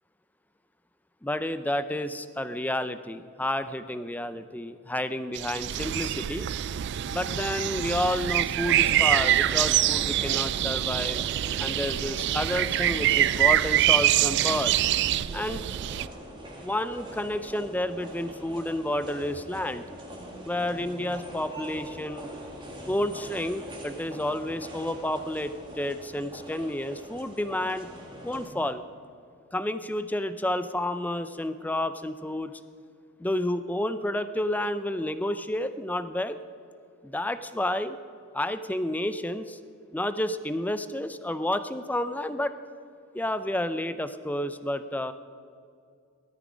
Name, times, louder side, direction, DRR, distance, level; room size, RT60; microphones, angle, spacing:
voice 1, 1.2-6.5 7.1-11.2 11.6-14.7 15.3-15.6 16.6-19.8 20.4-22.3 22.8-27.9 28.2-28.8 29.5-32.6 33.2-36.4 37.0-38.0 38.3-39.6 39.9-42.5 43.1-45.1, left 1 dB, 10° left, 12 dB, 0.5 m, -30 dB
sound 1, 5.3-16.1, right 13 dB, 55° right, 0.3 m, -25 dB
sound 2, 8.6-28.5, right 1 dB, 25° right, 2.3 m, -42 dB
18.0 x 13.0 x 5.0 m, 2.4 s
head